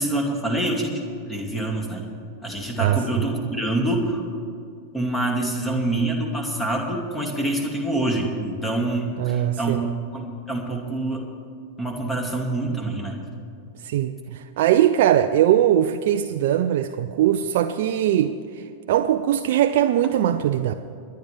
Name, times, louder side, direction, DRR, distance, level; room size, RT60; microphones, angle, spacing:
voice 1, 0.0-2.0 2.4-4.2 4.9-9.8 10.1-11.2 11.8-13.2, right 1 dB, 10° left, 1 dB, 2.4 m, -26 dB
voice 2, 9.2-9.8 13.8-18.3 18.9-20.7, right 11 dB, 55° right, 7 dB, 0.4 m, -20 dB
29.5 x 10.5 x 3.4 m, 2.4 s
figure-of-eight pair, 90°, 0 cm